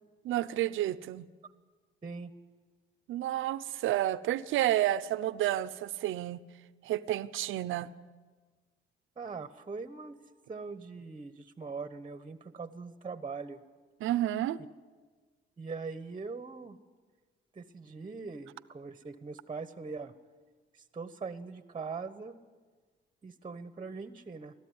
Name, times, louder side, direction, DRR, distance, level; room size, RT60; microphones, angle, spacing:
voice 1, 0.2-1.2 3.1-6.4 6.8-7.9 14.0-14.6, right 13 dB, 85° right, 0.7 m, -30 dB
voice 2, 9.2-10.2 10.5-13.6 15.6-16.8 17.5-20.1 20.7-22.4 23.2-24.5, right 4 dB, 25° right, 1.1 m, -41 dB
21.5 x 14.5 x 9.6 m
cardioid pair, 90°, 20 cm